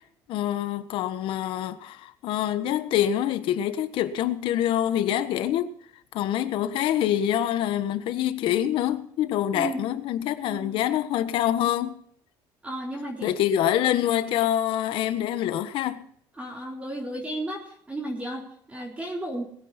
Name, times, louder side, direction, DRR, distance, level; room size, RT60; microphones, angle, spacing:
voice 1, 0.3-5.7 6.1-12.0 13.2-16.1, left 11 dB, 70° left, 1.4 m, -25 dB
voice 2, 10.5-10.9 12.6-13.3 16.4-19.4, right 1 dB, 15° right, 4.0 m, -34 dB
21.0 x 9.8 x 4.4 m
cardioid pair, 115°, 9 cm